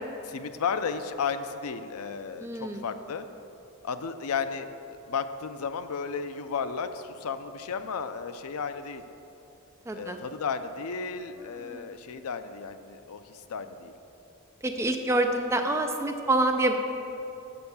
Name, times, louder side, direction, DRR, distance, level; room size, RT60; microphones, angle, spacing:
voice 1, 0.2-3.3 3.8-9.0 9.9-13.9, left 6 dB, 80° left, 10 dB, 0.5 m, -34 dB
voice 2, 2.4-2.8 9.9-10.2 11.4-11.9 14.6-16.7, right 2 dB, 15° right, 4 dB, 0.4 m, -27 dB
6.8 x 6.5 x 6.9 m, 2.9 s
head